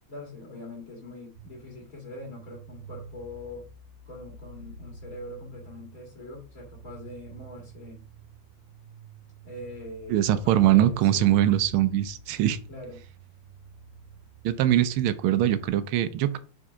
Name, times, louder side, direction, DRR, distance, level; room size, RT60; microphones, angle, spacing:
voice 1, 0.1-3.7 4.1-8.0 9.4-11.4 12.3-13.0, left 1 dB, 40° left, -2 dB, 2.5 m, -43 dB
sound 1, 1.3-15.7, right 4 dB, 45° right, 2.1 m, -49 dB
voice 2, 10.1-12.6 14.4-16.4, right 12 dB, 80° right, 13 dB, 1.5 m, -22 dB
4.9 x 4.6 x 5.5 m, 0.38 s
omnidirectional pair, 2.3 m